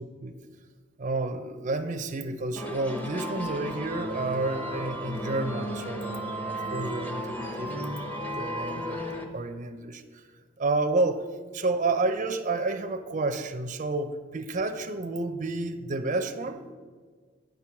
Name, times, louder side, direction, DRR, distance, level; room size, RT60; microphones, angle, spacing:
voice 1, 1.0-8.0 8.3-9.0 9.3-10.0 10.6-11.2 11.5-16.7, right 3 dB, 40° right, 7 dB, 0.5 m, -30 dB
sound 1, 2.6-9.2, equal, 10° left, 0.8 m, -34 dB
9.3 x 4.7 x 7.1 m, 1.5 s
head